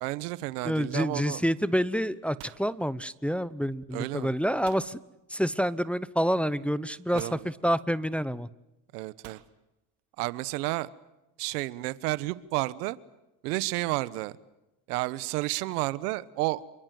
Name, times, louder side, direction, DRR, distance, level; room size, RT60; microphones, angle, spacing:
voice 1, 0.0-1.4 3.9-4.3 7.1-7.5 8.9-9.4 10.2-10.9 11.4-13.0 13.4-14.4 14.9-16.6, right 19 dB, 90° right, 17 dB, 1.2 m, -31 dB
voice 2, 0.6-5.0 5.3-8.5, equal, 5° left, 16 dB, 0.9 m, -28 dB
sound 1, 2.2-3.6 4.7-5.0 6.1-6.2 7.2-7.5 9.2-9.5, right 15 dB, 60° right, 1.8 m, -50 dB
28.0 x 23.5 x 7.8 m, 0.95 s
supercardioid pair, 95°, 45 cm